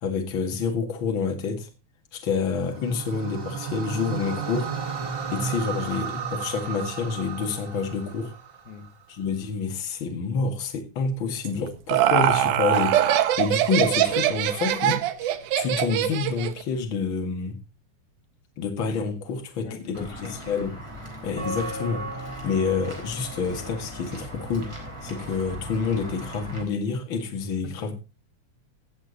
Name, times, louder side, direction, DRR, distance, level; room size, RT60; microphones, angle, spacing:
voice 1, 0.0-1.7 2.1-4.7 5.3-8.3 9.1-17.6 18.6-20.7 21.2-24.7 25.0-27.9, left 5 dB, 45° left, 2.4 m, -28 dB
sound 1, 2.6-8.9, right 6 dB, 70° right, 0.5 m, -33 dB
Laughter, 11.4-16.6, right 12 dB, 90° right, 2.4 m, -22 dB
voice 2, 19.6-20.4 27.6-27.9, left 6 dB, 85° left, 3.0 m, -40 dB
Walk footsteps / Bell, 19.9-26.6, equal, 10° right, 3.6 m, -37 dB
17.0 x 7.1 x 4.0 m
omnidirectional pair, 3.6 m